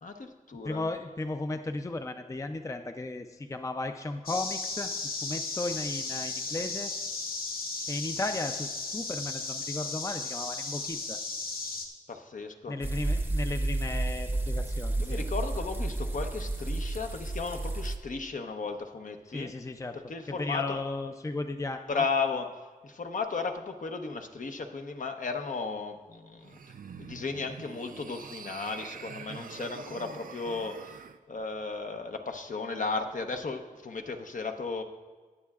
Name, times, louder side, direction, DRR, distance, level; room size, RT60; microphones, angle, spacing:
voice 1, 0.0-0.9 12.1-12.7 15.0-19.5 19.9-20.8 21.9-22.5 22.8-26.6 27.0-31.0 31.3-34.8, left 4 dB, 60° left, 5 dB, 0.8 m, -35 dB
voice 2, 0.6-4.9 5.2-6.9 7.9-11.2 12.7-15.2 19.3-20.0 20.3-22.0, left 2 dB, 20° left, 6 dB, 0.5 m, -35 dB
sound 1, 4.3-11.9, left 3 dB, 90° left, 1.1 m, -35 dB
sound 2, 12.8-18.0, right 2 dB, 15° right, 0.7 m, -31 dB
sound 3, 26.4-31.2, right 6 dB, 70° right, 0.5 m, -45 dB
19.5 x 7.5 x 2.4 m, 1.4 s
wide cardioid pair, 95°, 15 cm